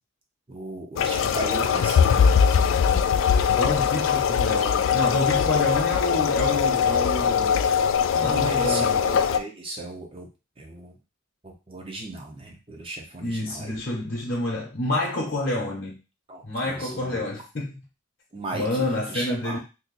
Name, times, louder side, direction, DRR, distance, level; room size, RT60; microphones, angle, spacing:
voice 1, 0.5-3.0 8.1-10.3 10.6-10.9 11.4-13.7 16.3-17.2 18.3-19.6, right 2 dB, 25° right, 0.7 m, -36 dB
sound 1, 1.0-9.4, left 7 dB, 75° left, 0.3 m, -21 dB
voice 2, 3.5-7.7 8.2-9.0 13.2-16.0 16.4-17.7 18.5-19.6, left 2 dB, 50° left, 0.8 m, -28 dB
2.8 x 2.5 x 3.8 m
head